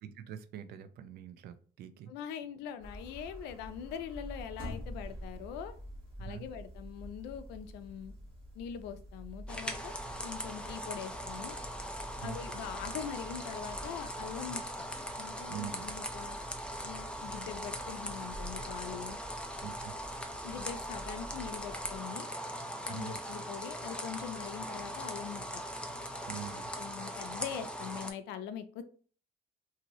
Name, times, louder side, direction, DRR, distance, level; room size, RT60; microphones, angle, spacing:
voice 1, 0.0-2.1 6.2-6.4 12.2-12.4 15.5-15.8 19.6-19.9 22.9-23.1 26.3-26.7, right 9 dB, 70° right, 10 dB, 0.4 m, -44 dB
voice 2, 2.1-5.7 6.2-8.1 8.6-9.9 10.2-11.6 12.2-14.6 15.2-16.4 16.8-19.2 20.4-22.3 22.9-25.6 26.5-28.8, left 8 dB, 90° left, 10 dB, 0.4 m, -42 dB
sound 1, 2.8-22.0, equal, 30° right, 1.5 m, -48 dB
sound 2, 9.5-28.1, equal, 5° left, 0.4 m, -40 dB
2.8 x 2.6 x 3.0 m, 0.43 s
cardioid pair, 110°, 17 cm